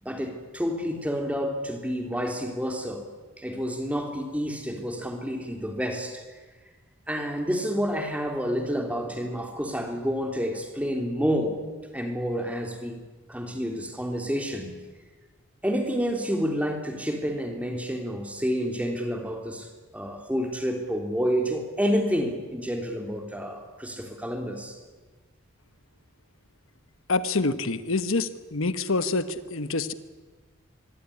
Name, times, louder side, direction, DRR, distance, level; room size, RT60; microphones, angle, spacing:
voice 1, 0.0-3.0 3.4-6.2 7.1-11.6 11.9-13.0 13.3-14.7 15.6-24.8, equal, 5° right, 3 dB, 3.4 m, -29 dB
voice 2, 27.1-29.9, left 3 dB, 75° left, 12 dB, 1.2 m, -26 dB
25.0 x 23.0 x 9.9 m, 1.3 s
head